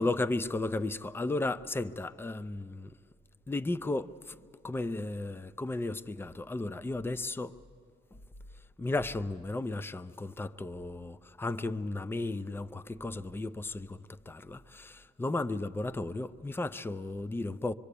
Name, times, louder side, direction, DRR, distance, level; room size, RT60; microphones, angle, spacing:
voice 1, 0.0-2.9 3.5-4.4 4.6-7.5 8.8-17.7, left 2 dB, 10° left, 0.5 m, -34 dB
25.0 x 23.5 x 8.4 m
cardioid pair, 90°, 20 cm